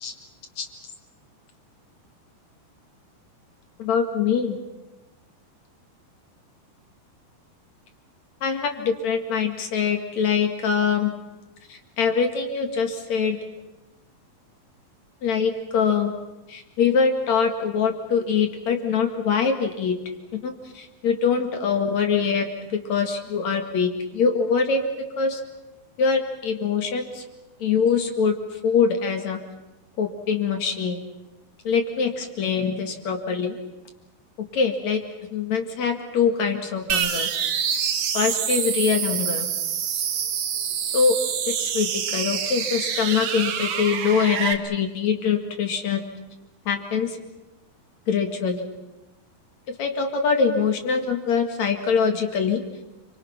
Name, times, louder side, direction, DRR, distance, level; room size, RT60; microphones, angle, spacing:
voice 1, 3.8-4.6 8.4-11.1 11.7-13.4 15.2-16.1 16.5-20.0 20.3-24.8 25.2-25.4 26.0-27.2 27.6-28.3 28.6-29.4 30.0-31.0 31.6-33.6 34.5-35.0 35.3-37.3 38.1-39.5 40.9-41.1 41.6-46.0 46.7-47.1 48.1-48.7 49.8-52.6, left 6 dB, 50° left, 5 dB, 2.7 m, -23 dB
sound 1, 36.9-44.5, right 8 dB, 60° right, 1.7 m, -26 dB
29.5 x 24.5 x 5.9 m, 1.0 s
omnidirectional pair, 4.8 m